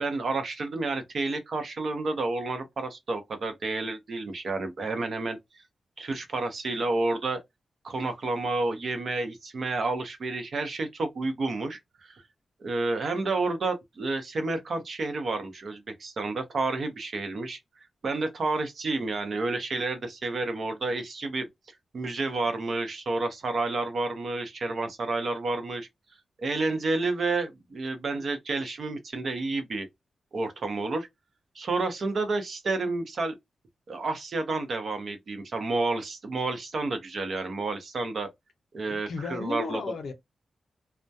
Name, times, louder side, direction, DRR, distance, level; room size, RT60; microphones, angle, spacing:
voice 1, 0.0-5.4 6.0-7.4 7.8-12.2 12.6-17.6 18.0-21.5 21.9-25.9 26.4-29.9 30.3-31.1 31.5-33.4 33.9-38.3 38.7-39.8, right 3 dB, 50° right, 0.6 m, -30 dB
voice 2, 38.9-40.1, left 4 dB, 75° left, 0.6 m, -34 dB
2.2 x 2.1 x 2.6 m
wide cardioid pair, 170°, 0 cm